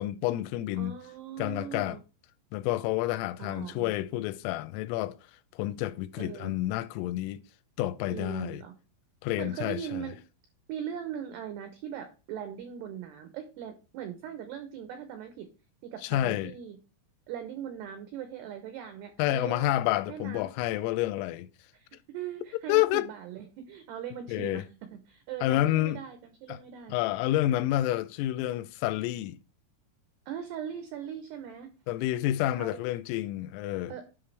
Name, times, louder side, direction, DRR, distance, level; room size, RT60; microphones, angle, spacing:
voice 1, 0.0-1.0 1.4-2.0 2.5-5.2 5.5-7.4 7.8-8.6 9.2-10.1 16.0-16.5 19.2-21.5 22.7-23.1 24.3-24.6 25.4-26.0 26.5-26.6 26.9-29.4 31.9-33.9, left 14 dB, 85° left, 3.2 m, -29 dB
voice 2, 0.8-2.0 3.4-3.9 6.2-6.6 8.1-8.7 9.4-10.2 10.7-15.5 15.8-16.8 17.3-19.7 20.1-20.5 21.7-24.7 24.9-26.9 30.3-31.7 32.6-32.8 33.9-34.0, right 9 dB, 85° right, 2.3 m, -40 dB
10.0 x 5.7 x 3.3 m
omnidirectional pair, 5.9 m